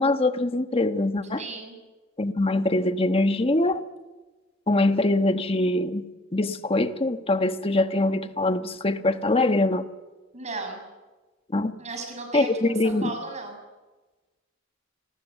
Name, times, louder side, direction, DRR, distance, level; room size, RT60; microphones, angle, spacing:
voice 1, 0.0-1.4 2.2-3.8 4.7-9.9 11.5-11.7 12.3-13.1, left 2 dB, 30° left, 9 dB, 1.2 m, -23 dB
voice 2, 1.4-1.7 10.3-10.8 11.8-12.5 12.8-13.6, right 3 dB, 35° right, 4 dB, 6.7 m, -35 dB
26.5 x 19.5 x 8.3 m, 1.2 s
head